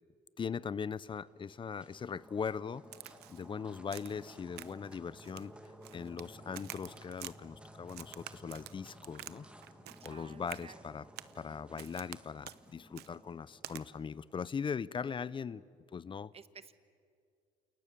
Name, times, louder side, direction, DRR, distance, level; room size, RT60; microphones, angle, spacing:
voice 1, 0.4-2.8 3.3-5.5 5.9-9.5 10.0-11.0 11.4-15.6 15.9-16.3, left 6 dB, 30° left, 0.6 m, -40 dB
sound 1, 1.1-14.4, equal, 5° right, 2.1 m, -56 dB
Crack, 2.9-3.5 3.9-4.2 4.6-4.9 5.2-6.3 6.5-7.3 7.9-9.4 9.6-10.2 10.5-10.7 11.2-11.4 11.8-12.2 12.4-12.6 13.0-13.1 13.6-13.8, right 14 dB, 75° right, 0.9 m, -48 dB
voice 2, 10.0-10.8 16.3-16.7, right 6 dB, 35° right, 1.3 m, -53 dB
29.0 x 28.0 x 6.9 m
cardioid pair, 110°, 17 cm